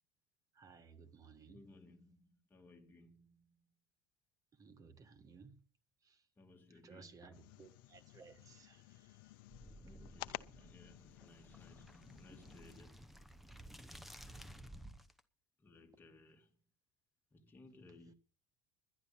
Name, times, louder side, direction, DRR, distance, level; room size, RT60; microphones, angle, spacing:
voice 1, 0.5-1.7 4.5-5.6 6.0-6.3 6.7-9.4 10.3-10.7, right 5 dB, 30° right, 1.4 m, -59 dB
voice 2, 1.5-3.6 6.4-7.4 9.8-13.1 15.6-16.5 17.3-18.1, left 2 dB, 20° left, 2.5 m, -61 dB
sound 1, 7.3-12.8, left 19 dB, 90° left, 0.6 m, -53 dB
sound 2, 9.5-15.2, equal, ahead, 0.9 m, -55 dB
11.5 x 10.5 x 7.1 m
supercardioid pair, 120°, 11 cm